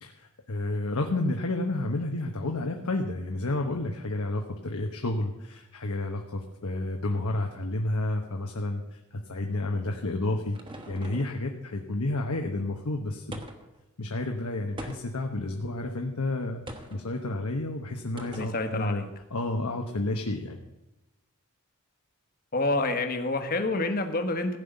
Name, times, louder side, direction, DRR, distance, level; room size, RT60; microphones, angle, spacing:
voice 1, 0.0-10.6 10.9-13.5 14.0-16.6 16.9-19.0 19.3-20.6, left 2 dB, 80° left, 3 dB, 1.1 m, -30 dB
sound 1, 9.9-11.4 13.3-13.8 14.8-15.3 16.7-17.0 18.2-18.6, right 1 dB, 20° right, 1.3 m, -42 dB
voice 2, 18.3-19.1 22.5-24.6, left 2 dB, 40° left, 7 dB, 1.3 m, -28 dB
15.5 x 5.6 x 9.0 m, 1.0 s
head